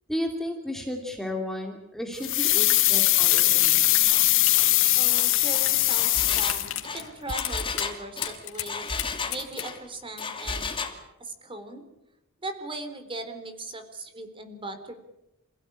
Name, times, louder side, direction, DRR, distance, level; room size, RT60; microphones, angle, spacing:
voice 1, 0.1-3.8, left 1 dB, ahead, 2 dB, 2.6 m, -33 dB
sound 1, 2.2-7.0 7.3-7.4, left 17 dB, 65° left, 1.2 m, -21 dB
sound 2, 2.4-4.2 4.4-5.8 6.1-7.1 7.4-7.9 8.2-9.6, left 12 dB, 80° left, 3.9 m, -33 dB
Engine, 4.1-4.3 4.5-4.7 5.1-9.8 10.2-11.0, left 4 dB, 25° left, 2.6 m, -34 dB
voice 2, 5.0-8.9 9.3-10.7 11.2-11.8 12.4-14.9, right 2 dB, 25° right, 7 dB, 3.8 m, -38 dB
28.0 x 16.0 x 10.0 m, 0.92 s
head